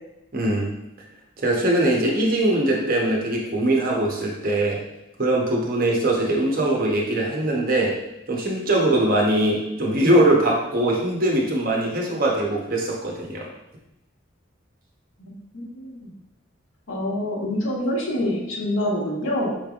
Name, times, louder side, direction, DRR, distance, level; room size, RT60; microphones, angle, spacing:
voice 1, 0.3-0.7 1.4-4.8 5.2-8.0 8.3-13.5, right 1 dB, 45° right, -1 dB, 0.8 m, -21 dB
voice 2, 15.2-16.1 16.9-19.5, left 1 dB, 85° left, -3 dB, 1.2 m, -26 dB
5.7 x 3.3 x 2.4 m, 0.87 s
head